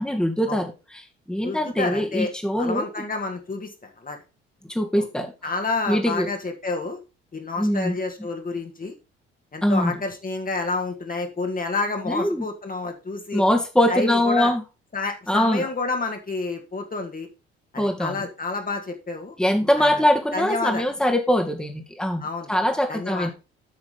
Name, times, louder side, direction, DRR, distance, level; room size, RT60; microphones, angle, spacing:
voice 1, 0.0-2.9 4.7-5.3 5.9-6.3 7.6-8.0 9.6-9.9 12.1-12.5 13.3-14.6 15.3-15.7 17.8-18.3 19.4-23.3, left 1 dB, ahead, 3 dB, 1.9 m, -22 dB
voice 2, 1.4-2.3 2.6-4.2 5.0-5.1 5.4-7.0 7.3-8.9 9.5-13.4 13.9-14.5 14.9-17.3 17.7-19.3 19.8-20.0 20.3-20.8 22.2-22.5 22.9-23.3, left 3 dB, 25° left, 4 dB, 2.0 m, -29 dB
8.1 x 6.0 x 5.0 m, 0.29 s
figure-of-eight pair, 50°, 31 cm